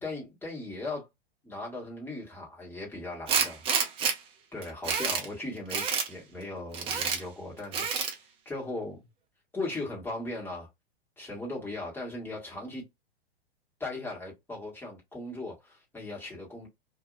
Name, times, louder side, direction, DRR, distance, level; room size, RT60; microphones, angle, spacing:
voice 1, 0.0-1.1 1.4-3.6 4.5-8.1 8.4-9.0 9.5-10.7 11.2-12.9 13.8-16.7, left 2 dB, 5° left, 1.6 m, -38 dB
Tools, 3.3-4.1 4.6-5.3 5.7-6.1 6.7-7.2 7.7-8.1, right 6 dB, 15° right, 0.5 m, -28 dB
2.7 x 2.7 x 2.5 m
hypercardioid pair, 120°, 32 cm